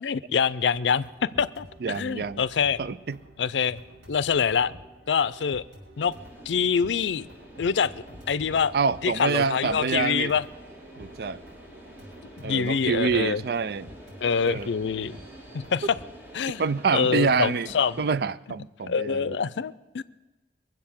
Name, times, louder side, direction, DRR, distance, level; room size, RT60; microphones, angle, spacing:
voice 1, 0.0-2.8 3.4-3.8 4.1-4.7 5.1-5.6 6.0-6.1 6.5-7.3 7.6-7.9 8.3-8.7 9.0-10.4 12.4-13.4 14.2-15.2 15.5-16.0 16.3-16.6 16.9-18.0 18.9-20.0, left 6 dB, 90° left, 0.5 m, -25 dB
sound 1, 0.7-16.1, equal, 90° right, 6.1 m, -49 dB
voice 2, 1.8-2.4 2.8-3.2 8.7-10.3 11.0-11.4 12.4-13.9 14.4-14.7 16.6-17.7 18.0-19.4, right 5 dB, 60° right, 0.4 m, -26 dB
sound 2, 6.0-18.2, right 1 dB, 10° right, 1.8 m, -48 dB
22.0 x 7.8 x 7.2 m
head